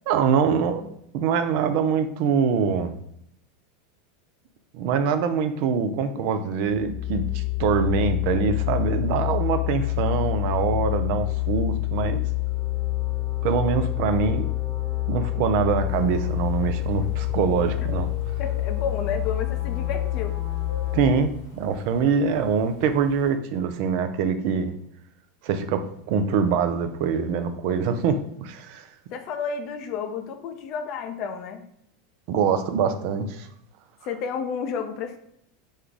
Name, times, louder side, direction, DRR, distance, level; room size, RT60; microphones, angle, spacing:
voice 1, 0.1-0.8 1.1-3.0 4.7-12.2 13.4-14.5 15.1-18.1 20.9-24.7 25.4-28.9 32.3-33.5, right 6 dB, 55° right, 9 dB, 0.4 m, -24 dB
sound 1, 6.7-21.1, left 18 dB, 35° left, 0.9 m, -27 dB
sound 2, 15.8-23.3, right 1 dB, 80° left, 1.4 m, -44 dB
voice 2, 18.4-20.4 29.1-31.6 34.0-35.2, left 6 dB, 50° left, 6 dB, 0.5 m, -31 dB
3.1 x 2.3 x 3.7 m, 0.73 s
hypercardioid pair, 85°, 0 cm